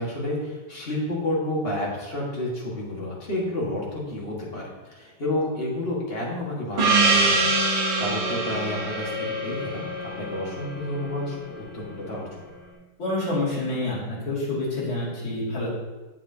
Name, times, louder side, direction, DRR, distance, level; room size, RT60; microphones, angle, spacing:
voice 1, 0.0-7.5 8.0-9.8 10.2-12.5, left 1 dB, 30° left, -4 dB, 1.7 m, -30 dB
Gong, 6.8-11.5, right 3 dB, 60° right, 1.8 m, -24 dB
voice 2, 13.0-15.7, left 2 dB, 75° left, -7 dB, 3.3 m, -27 dB
7.9 x 7.5 x 2.8 m, 1.2 s
omnidirectional pair, 2.2 m